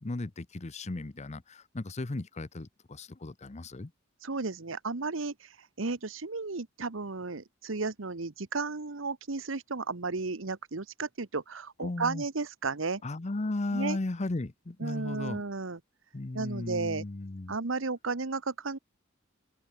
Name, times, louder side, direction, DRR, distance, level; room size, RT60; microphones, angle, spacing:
voice 1, 0.0-3.9 11.8-12.2 13.0-15.4 16.1-17.5, left 2 dB, 35° left, 0.7 m, -35 dB
voice 2, 4.2-13.0 13.7-14.0 14.8-15.8 16.3-17.0 17.5-18.8, right 3 dB, 75° right, 1.2 m, -34 dB
head